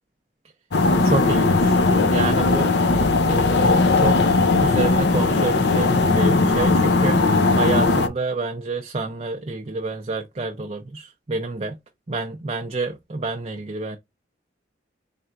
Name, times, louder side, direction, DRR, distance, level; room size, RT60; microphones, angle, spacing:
sound 1, 0.7-8.1, left 3 dB, 70° left, 0.6 m, -18 dB
voice 1, 1.0-1.8 2.1-2.7 3.3-11.8 12.1-14.0, right 3 dB, 35° right, 0.5 m, -28 dB
4.4 x 3.3 x 2.5 m
head